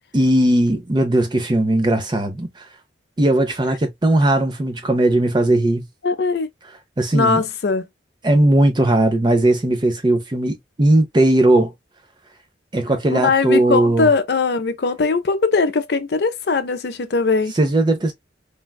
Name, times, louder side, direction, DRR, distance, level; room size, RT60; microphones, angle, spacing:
voice 1, 0.1-2.7 3.2-5.9 7.0-7.4 8.2-11.7 12.7-14.1 17.6-18.1, right 1 dB, 25° right, 0.5 m, -18 dB
voice 2, 6.0-6.5 7.1-7.9 13.1-17.5, left 4 dB, 60° left, 0.5 m, -20 dB
3.3 x 2.3 x 2.2 m
head